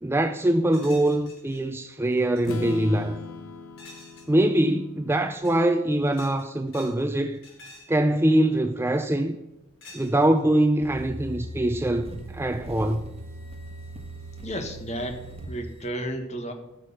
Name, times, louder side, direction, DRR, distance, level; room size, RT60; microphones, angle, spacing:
voice 1, 0.0-3.2 4.3-7.4 7.9-9.4 9.9-13.1, right 1 dB, 10° right, 0.4 m, -23 dB
sound 1, 0.7-1.6 2.0-2.4 3.8-4.3 5.2-5.6 6.0-7.0 7.3-8.0 8.9-9.2 9.8-10.5, left 2 dB, 60° left, 4.3 m, -48 dB
Strum, 2.4-6.4, left 4 dB, 80° left, 1.4 m, -40 dB
sound 2, 10.8-15.8, right 1 dB, 30° right, 1.5 m, -40 dB
voice 2, 14.4-16.5, equal, 30° left, 1.6 m, -33 dB
16.5 x 6.5 x 5.6 m
head